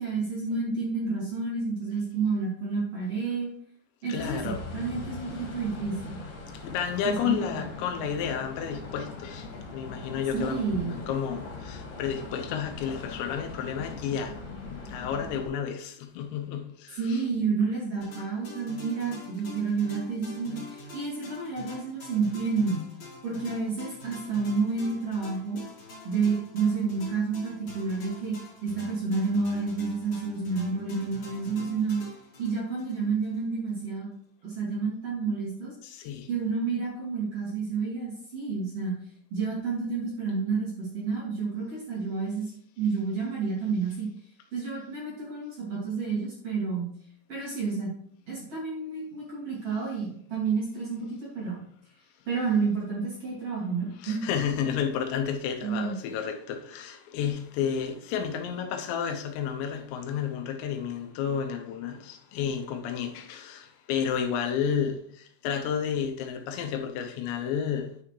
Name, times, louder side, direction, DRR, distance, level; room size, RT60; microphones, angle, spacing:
voice 1, 0.0-3.5 4.0-4.4 4.7-6.2 7.0-7.6 10.3-11.1 17.0-22.9 23.2-25.6 26.0-28.3 28.6-32.0 32.4-34.1 34.4-35.7 36.3-38.9 39.3-44.1 44.5-46.9 47.3-47.9 48.3-51.6 52.3-54.3 55.6-55.9, right 4 dB, 40° right, 2.7 m, -30 dB
voice 2, 4.1-4.6 6.5-14.4 14.7-17.2 35.8-36.3 54.0-68.0, left 8 dB, 85° left, 3.1 m, -31 dB
sound 1, 4.2-15.5, left 3 dB, 65° left, 3.6 m, -40 dB
sound 2, 18.0-33.4, left 3 dB, 35° left, 3.5 m, -46 dB
10.0 x 5.8 x 3.2 m
omnidirectional pair, 5.0 m